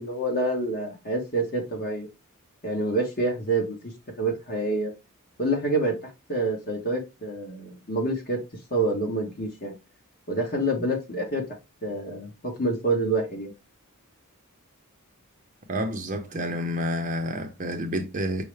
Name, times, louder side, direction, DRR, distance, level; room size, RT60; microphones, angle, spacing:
voice 1, 0.0-2.1 2.6-4.9 5.4-8.4 8.7-9.7 10.3-11.4 11.8-13.5, right 2 dB, 45° left, 1.2 m, -27 dB
voice 2, 15.7-18.4, equal, 35° right, 0.6 m, -29 dB
5.5 x 2.1 x 3.2 m
head